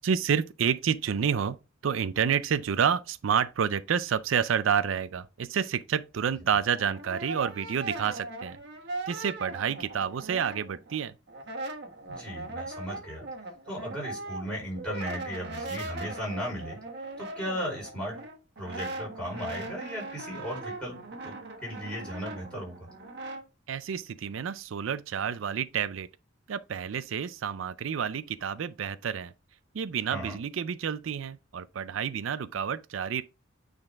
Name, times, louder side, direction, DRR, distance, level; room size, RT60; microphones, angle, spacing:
voice 1, 0.0-1.6 1.8-8.6 9.1-11.1 23.7-26.1 26.5-29.3 29.7-33.2, right 7 dB, 80° right, 0.4 m, -29 dB
Brass instrument, 6.6-11.0 11.3-23.4, right 2 dB, 55° right, 1.3 m, -40 dB
voice 2, 12.1-13.2 13.6-16.8 17.2-18.2 18.6-22.9 30.1-30.3, equal, 5° left, 4.6 m, -36 dB
8.8 x 4.0 x 3.5 m
head